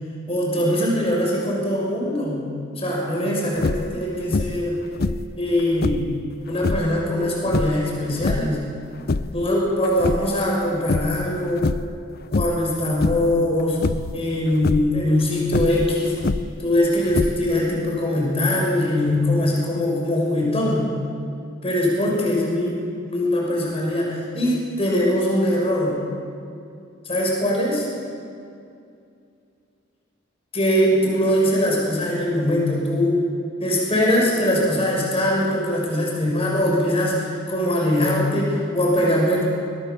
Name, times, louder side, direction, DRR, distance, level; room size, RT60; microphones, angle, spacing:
voice 1, 0.3-2.5 2.8-4.8 5.4-6.0 6.5-8.6 9.3-11.7 12.3-13.8 14.1-16.1 16.6-20.9 21.6-26.0 27.0-27.9 30.5-33.2 33.6-39.4, left 1 dB, 30° left, -2 dB, 6.3 m, -22 dB
sound 1, 3.5-4.0 4.3-4.7 5.0-6.1 6.6-6.9 7.5-8.6 8.9-9.5 9.8-10.6 10.9-11.3 11.6-12.0 12.3-12.7 13.0-13.4 13.8-14.2 14.5-14.9 15.5-16.6 17.1-17.6, left 3 dB, 50° left, 0.6 m, -25 dB
24.0 x 18.5 x 7.1 m, 2.4 s
head